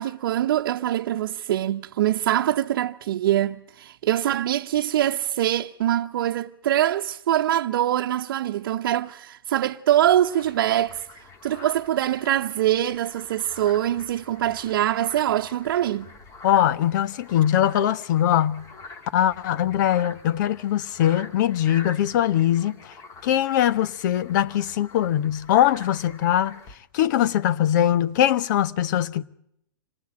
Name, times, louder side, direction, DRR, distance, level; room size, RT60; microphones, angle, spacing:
voice 1, 0.0-16.1, right 12 dB, 65° right, 0.9 m, -24 dB
sound 1, 9.9-26.8, left 3 dB, 25° left, 3.0 m, -46 dB
voice 2, 16.4-18.6 19.1-22.9 23.2-26.6 26.9-29.2, left 11 dB, 55° left, 1.2 m, -21 dB
27.0 x 19.0 x 8.8 m
hypercardioid pair, 135°, 12 cm